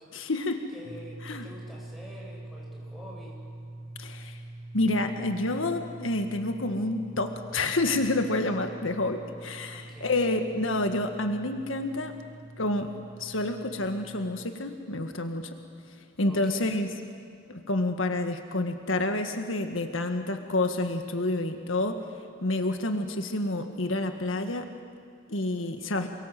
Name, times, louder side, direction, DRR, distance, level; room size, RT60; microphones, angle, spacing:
voice 1, 0.1-0.7 1.2-1.5 4.0-4.4 4.7-12.1 12.6-12.9 13.2-15.5 16.2-16.9 17.5-22.1 22.4-24.7 25.3-26.1, left 2 dB, 75° left, 6 dB, 1.8 m, -28 dB
voice 2, 0.7-3.4 9.7-10.1 16.3-16.7, equal, ahead, -4 dB, 7.9 m, -47 dB
sound 1, 0.8-14.5, right 1 dB, 60° right, 1.7 m, -45 dB
28.5 x 24.0 x 7.7 m, 2.3 s
head